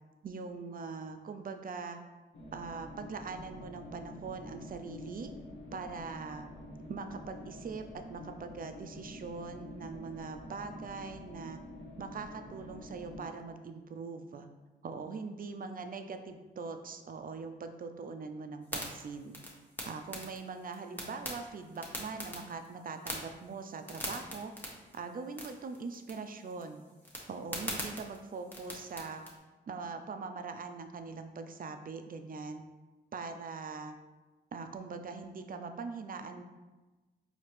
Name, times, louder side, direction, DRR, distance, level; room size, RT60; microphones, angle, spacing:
voice 1, 0.2-2.0 2.5-5.3 5.7-6.5 6.9-11.6 12.0-14.5 14.8-19.4 19.8-24.5 24.9-26.9 27.3-29.3 29.7-32.6 33.1-34.0 34.5-36.4, right 4 dB, 50° right, 7 dB, 0.4 m, -42 dB
sound 1, 2.3-13.2, left 1 dB, 75° left, 0.8 m, -48 dB
sound 2, 18.6-29.4, equal, 10° left, 1.1 m, -44 dB
4.2 x 2.8 x 3.2 m, 1.2 s
cardioid pair, 55°, 19 cm